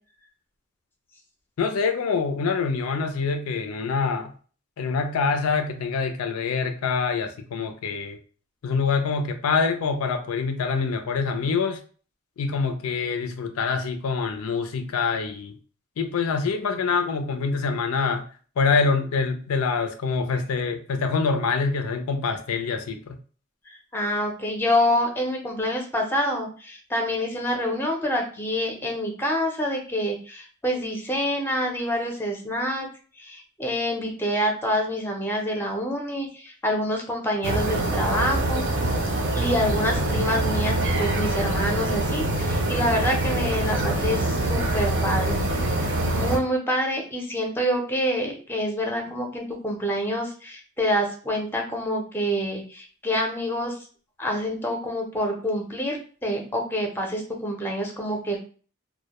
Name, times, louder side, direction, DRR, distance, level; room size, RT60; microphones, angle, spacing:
voice 1, 1.6-4.3 4.8-8.2 8.6-11.8 12.4-15.5 16.0-18.2 18.6-23.1, left 5 dB, 90° left, 7 dB, 0.4 m, -25 dB
voice 2, 23.7-32.9 33.2-38.6 39.4-53.7 54.2-58.4, equal, 10° left, 2 dB, 0.5 m, -27 dB
sound 1, 37.4-46.4, right 1 dB, 55° right, 0.5 m, -24 dB
2.2 x 2.1 x 2.9 m, 0.40 s
head